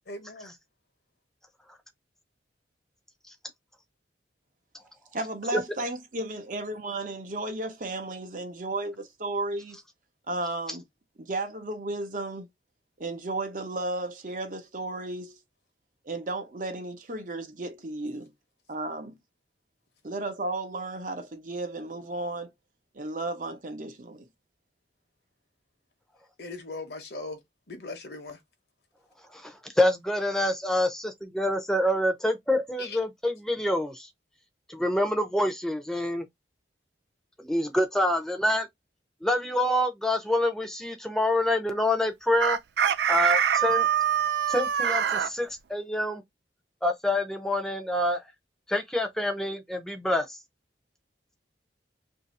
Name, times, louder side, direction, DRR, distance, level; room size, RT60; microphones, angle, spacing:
voice 1, 0.1-0.5 26.4-27.4 27.7-28.4 32.8-33.0, left 3 dB, 60° left, 0.9 m, -39 dB
voice 2, 5.1-9.8 10.3-10.8 11.2-12.5 13.0-15.4 16.0-18.3 18.7-19.2 20.0-22.5 22.9-24.3, right 2 dB, 45° right, 0.8 m, -34 dB
voice 3, 29.3-34.1 34.7-36.2 37.4-38.7 39.2-42.6 43.1-43.9 44.5-46.2 46.8-48.2 48.7-50.4, left 1 dB, 5° left, 0.7 m, -26 dB
Chicken rooster, 42.4-45.3, right 8 dB, 70° right, 0.4 m, -24 dB
2.9 x 2.7 x 4.1 m
head